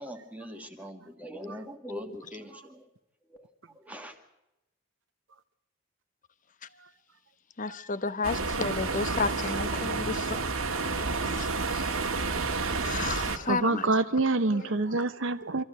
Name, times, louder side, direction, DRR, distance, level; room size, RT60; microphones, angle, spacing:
voice 1, 0.0-2.9 3.3-3.5 3.7-4.2, equal, 5° right, 1.7 m, -42 dB
voice 2, 7.6-10.4 10.8-11.9 12.8-13.9 14.5-14.9, left 4 dB, 40° left, 0.9 m, -33 dB
sound 1, 8.2-13.4, right 3 dB, 85° right, 1.7 m, -30 dB
voice 3, 13.5-15.6, right 3 dB, 65° right, 0.7 m, -27 dB
25.0 x 14.5 x 8.1 m
head